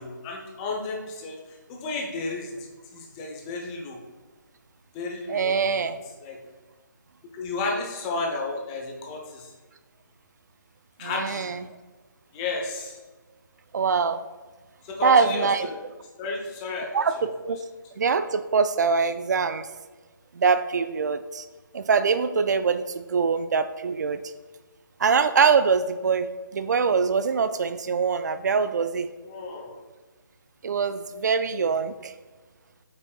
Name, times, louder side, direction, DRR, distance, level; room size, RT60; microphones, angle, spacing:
voice 1, 0.0-4.0 4.9-5.9 6.2-6.4 7.3-9.5 11.0-11.5 12.3-13.0 14.8-15.8 16.2-17.3 29.2-29.8, left 3 dB, 15° left, 0 dB, 0.8 m, -33 dB
voice 2, 5.3-6.0 11.0-11.6 13.7-14.2 15.0-15.7 16.9-17.2 17.4-17.6 18.0-19.7 20.3-21.4 21.7-24.2 25.0-29.1 30.6-32.1, right 5 dB, 55° right, 11 dB, 0.4 m, -23 dB
8.2 x 5.3 x 2.3 m, 1.3 s
figure-of-eight pair, 150°, 11 cm